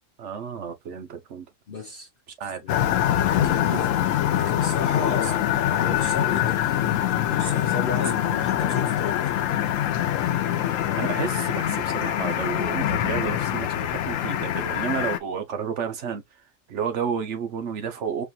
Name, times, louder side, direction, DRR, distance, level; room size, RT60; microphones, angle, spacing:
voice 1, 0.2-1.5 2.4-2.6 2.9-3.0 3.7-3.8 5.2-5.3 7.7-7.9 10.4-10.6 11.0-16.2 16.7-18.3, right 7 dB, 65° right, 1.2 m, -31 dB
voice 2, 1.7-2.1 2.6-2.7 3.2-6.9 7.2-9.4, left 4 dB, 55° left, 0.8 m, -33 dB
sound 1, 2.7-15.2, left 11 dB, 85° left, 1.0 m, -24 dB
5.0 x 2.7 x 2.3 m
omnidirectional pair, 1.3 m